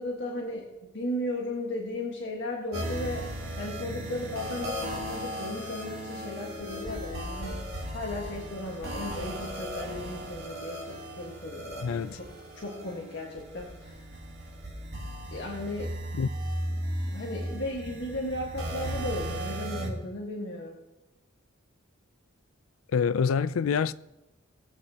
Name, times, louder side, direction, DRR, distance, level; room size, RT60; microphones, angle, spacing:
voice 1, 0.0-3.3 3.5-7.7 7.9-12.3 12.6-14.1 15.3-15.9 16.7-20.8, left 1 dB, 60° left, 1.5 m, -36 dB
sound 1, 2.7-19.9, equal, 55° right, 3.0 m, -36 dB
voice 2, 11.8-12.2 16.1-16.3 22.9-23.9, left 6 dB, 85° left, 0.4 m, -26 dB
19.5 x 8.2 x 2.9 m
head